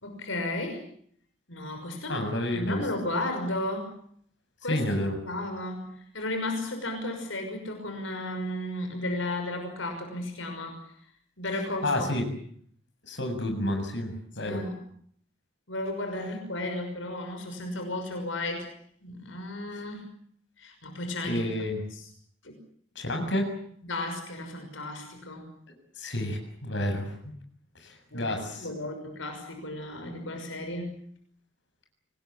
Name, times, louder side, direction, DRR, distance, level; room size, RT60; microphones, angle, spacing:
voice 1, 0.0-0.8 1.5-2.2 2.5-3.9 4.6-5.0 5.2-10.9 11.4-12.1 14.4-14.8 15.7-18.7 19.0-20.1 20.6-21.5 21.9-22.0 22.4-22.5 23.8-25.5 28.1-31.0, left 1 dB, 80° left, 5 dB, 6.1 m, -34 dB
voice 2, 2.1-2.8 4.7-5.2 11.8-12.2 13.0-14.6 21.2-21.8 23.0-23.5 26.0-27.3 27.8-28.7, left 1 dB, 65° left, 4 dB, 7.2 m, -30 dB
26.0 x 19.5 x 8.4 m, 0.64 s
head